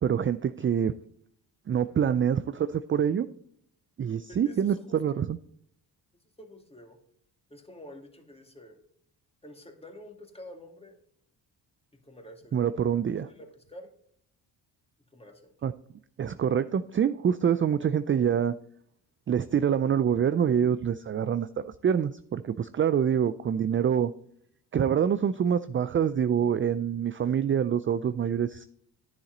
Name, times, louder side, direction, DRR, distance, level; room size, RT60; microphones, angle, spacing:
voice 1, 0.0-0.9 1.7-3.3 4.0-5.4 12.5-13.3 15.6-15.7 16.2-18.5 19.3-21.5 21.8-24.1 24.7-28.7, right 8 dB, 30° right, 13 dB, 0.4 m, -26 dB
voice 2, 4.3-5.3 6.4-7.0 7.5-8.8 9.4-11.0 12.0-12.6 13.1-13.9 15.1-15.5, left 1 dB, 15° left, 4 dB, 2.2 m, -48 dB
10.0 x 7.3 x 3.9 m, 0.68 s
supercardioid pair, 60°, 45 cm